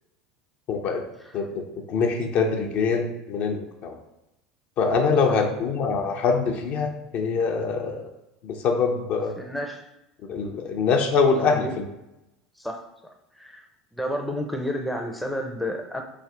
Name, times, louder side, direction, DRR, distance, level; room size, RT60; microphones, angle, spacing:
voice 1, 0.7-1.0 1.3-3.9 4.8-8.1 8.4-9.4 10.3-11.9, left 5 dB, 55° left, 3 dB, 0.6 m, -24 dB
voice 2, 9.4-9.9 11.5-11.7 12.6-12.8 13.4-13.6 13.9-16.0, equal, ahead, 3 dB, 0.5 m, -31 dB
3.3 x 2.6 x 3.7 m, 0.91 s
hypercardioid pair, 85°, 3 cm